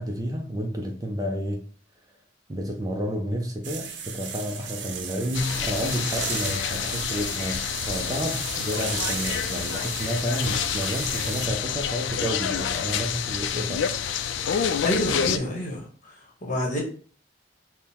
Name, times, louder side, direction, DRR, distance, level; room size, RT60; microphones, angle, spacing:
voice 1, 0.0-1.6 2.5-13.9, equal, 20° right, 0.4 m, -30 dB
sound 1, 3.6-11.5, right 6 dB, 70° right, 0.6 m, -35 dB
sound 2, 5.3-15.4, left 8 dB, 80° left, 0.3 m, -28 dB
voice 2, 14.5-15.8 16.4-16.8, equal, 45° left, 1.1 m, -28 dB
3.7 x 2.1 x 4.2 m
head